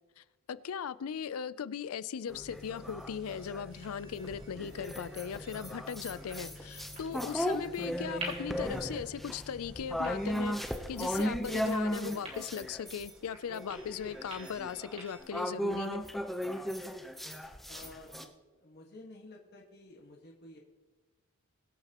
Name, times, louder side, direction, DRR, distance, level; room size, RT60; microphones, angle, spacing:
voice 1, 0.2-10.6 10.9-16.0, left 7 dB, 85° left, 0.4 m, -38 dB
sound 1, 2.3-3.7 4.2-13.1 13.5-18.2, equal, ahead, 0.7 m, -36 dB
sound 2, 2.3-10.3, left 1 dB, 85° right, 3.2 m, -51 dB
sound 3, 2.6-15.2, right 2 dB, 30° right, 3.4 m, -51 dB
voice 2, 17.7-20.6, left 2 dB, 45° left, 1.6 m, -52 dB
22.5 x 8.8 x 3.0 m
head